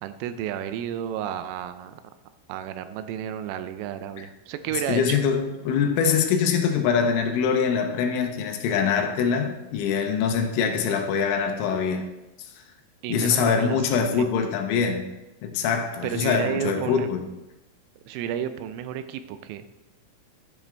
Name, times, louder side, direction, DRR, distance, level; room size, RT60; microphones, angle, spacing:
voice 1, 0.0-2.0 2.5-5.2 10.6-11.0 13.0-14.3 16.0-17.1 18.1-19.6, right 10 dB, 85° right, 10 dB, 3.2 m, -32 dB
voice 2, 4.9-12.0 13.1-15.1 15.4-17.3, left 6 dB, 80° left, 4 dB, 3.3 m, -24 dB
12.0 x 10.5 x 3.4 m, 0.98 s
omnidirectional pair, 5.8 m